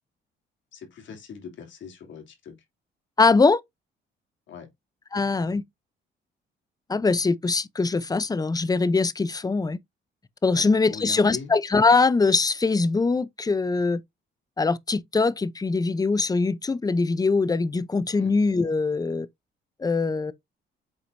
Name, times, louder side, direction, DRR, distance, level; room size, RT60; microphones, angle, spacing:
voice 1, 0.7-2.6 4.5-4.7 10.5-11.5 18.1-18.3, left 6 dB, 70° left, 3.1 m, -41 dB
voice 2, 3.2-3.6 5.1-5.6 6.9-9.8 10.4-14.0 14.6-19.3 19.8-20.3, left 4 dB, 20° left, 0.7 m, -22 dB
8.1 x 4.9 x 2.7 m
cardioid pair, 90°, 20 cm